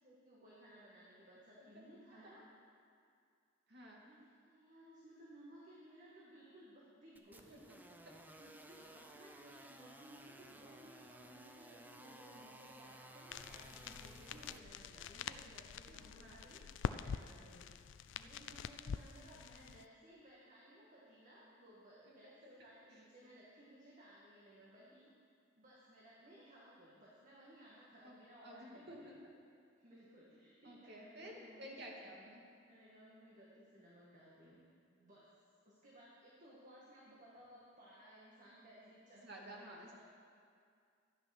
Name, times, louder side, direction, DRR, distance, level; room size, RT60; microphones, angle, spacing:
voice 1, 0.0-2.5 3.9-7.6 8.4-25.0 25.6-29.1 29.8-31.8 32.6-34.6 34.9-35.3 35.7-40.0, right 1 dB, 40° right, -6 dB, 2.0 m, -60 dB
voice 2, 3.7-4.0 7.5-7.8 15.9-16.4 22.1-22.5 22.9-23.0 28.0-29.2 30.6-32.4 39.2-40.0, equal, 60° right, -2 dB, 2.3 m, -53 dB
sound 1, 7.2-14.6, right 1 dB, 10° right, 0.6 m, -57 dB
sound 2, 13.3-19.8, left 6 dB, 65° left, 0.4 m, -46 dB
13.5 x 9.6 x 6.1 m, 2.3 s
head